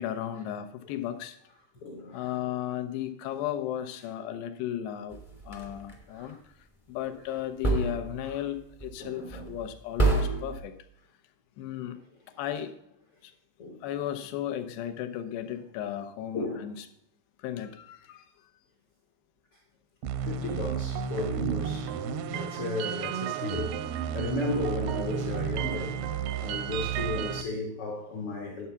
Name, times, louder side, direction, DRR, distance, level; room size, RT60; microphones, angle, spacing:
voice 1, 0.0-1.4 2.1-5.2 5.4-6.4 6.9-10.8 11.6-12.0 12.4-12.8 13.2-13.3 13.8-16.9 17.4-18.3, left 11 dB, 90° left, 3.0 m, -35 dB
voice 2, 1.8-2.4 6.1-6.4 7.1-7.2 8.2-8.4 9.0-9.5 13.6-13.8 16.3-16.7 20.2-21.9 22.2-26.0 26.4-28.7, left 2 dB, 75° left, 1.3 m, -34 dB
sound 1, 5.1-5.9 7.6-8.4 8.8-9.0 9.3-9.7 10.0-10.6, right 3 dB, 40° left, 0.4 m, -28 dB
sound 2, 20.0-27.4, right 8 dB, 85° right, 2.6 m, -32 dB
11.0 x 7.0 x 5.6 m
omnidirectional pair, 4.6 m